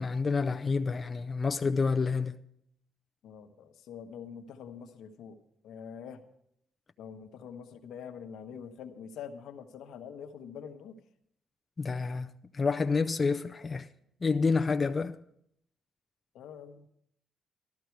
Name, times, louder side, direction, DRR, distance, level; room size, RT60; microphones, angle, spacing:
voice 1, 0.0-2.4 11.8-13.9 14.2-15.2, left 4 dB, 30° left, 0.5 m, -29 dB
voice 2, 3.2-5.4 5.6-6.3 7.0-11.0 16.3-16.9, left 7 dB, 80° left, 1.1 m, -45 dB
13.0 x 13.0 x 4.6 m
cardioid pair, 90°, 0 cm